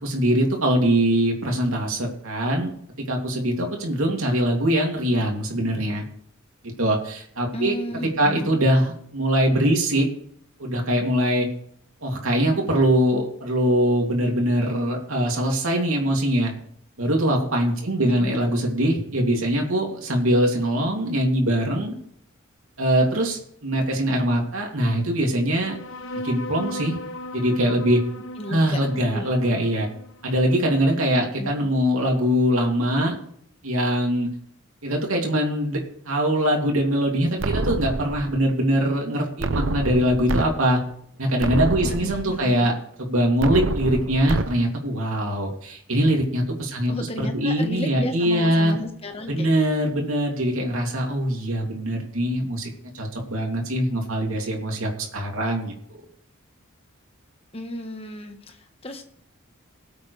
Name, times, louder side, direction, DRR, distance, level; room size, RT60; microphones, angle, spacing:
voice 1, 0.0-2.7 3.1-6.0 6.8-7.7 8.2-10.1 10.6-11.5 12.0-16.5 17.0-21.9 22.8-25.8 26.2-27.0 27.3-28.0 28.5-29.9 30.2-33.2 33.6-34.3 34.8-40.8 41.2-42.7 43.0-46.9 47.2-48.7 49.3-52.7 52.9-56.1, equal, 80° right, 0 dB, 2.8 m, -22 dB
voice 2, 7.5-8.5 18.0-18.4 28.4-28.8 29.1-29.5 31.4-31.5 41.8-42.7 46.9-49.5 57.5-59.0, left 1 dB, 25° left, 5 dB, 1.4 m, -33 dB
sound 1, 25.6-32.6, left 1 dB, 70° left, 1.0 m, -38 dB
sound 2, 37.4-38.4 39.4-40.4 40.9-41.0 41.4-42.4 43.4-44.4, right 2 dB, 60° right, 0.8 m, -27 dB
21.0 x 8.2 x 3.4 m, 0.66 s
head